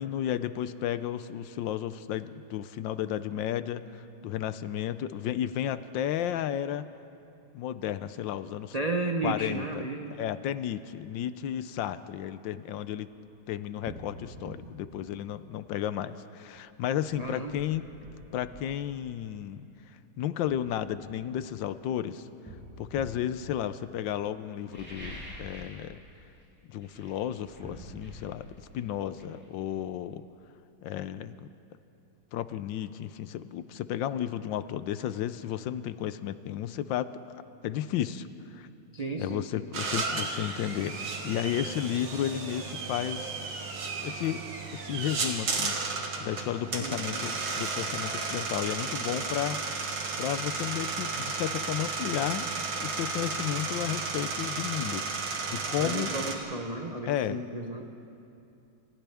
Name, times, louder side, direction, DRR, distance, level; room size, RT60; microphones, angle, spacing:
voice 1, 0.0-6.9 7.5-8.7 9.2-9.8 10.2-13.1 13.5-17.8 18.3-19.7 20.2-22.2 22.8-26.0 26.7-28.5 28.7-30.2 30.8-31.5 32.3-37.1 37.3-38.3 38.5-38.7 39.2-43.3 44.0-44.5 44.7-45.8 46.2-52.5 52.8-55.0 55.5-56.1 57.1-57.4, left 11 dB, 75° left, 13 dB, 1.3 m, -33 dB
voice 2, 8.7-10.2 17.2-17.6 38.9-39.7 46.8-47.1 55.8-57.9, right 2 dB, 60° right, 3 dB, 0.4 m, -33 dB
sound 1, 13.1-13.2 13.8-14.1 14.4-14.6 16.5-16.6 17.1-18.7 19.8-19.9 20.5-21.9 22.4-23.3 24.5-25.8 26.1-26.4 26.8-30.3 30.6-30.7, equal, 5° left, 6.7 m, -46 dB
sound 2, 39.7-56.3, right 4 dB, 90° right, 2.6 m, -33 dB
28.5 x 26.0 x 3.5 m, 2.7 s
omnidirectional pair, 2.2 m